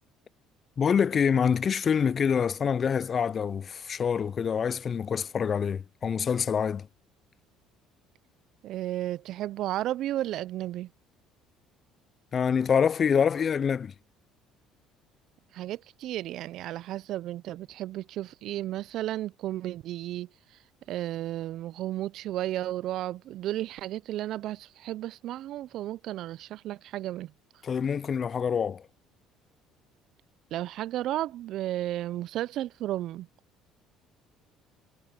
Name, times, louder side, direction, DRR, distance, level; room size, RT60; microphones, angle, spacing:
voice 1, 0.8-6.9 12.3-13.9 27.6-28.8, left 7 dB, 40° left, 0.3 m, -26 dB
voice 2, 8.6-10.9 15.5-20.3 20.9-27.3 30.5-33.3, right 14 dB, 65° right, 0.4 m, -33 dB
supercardioid pair, 80°, 0 cm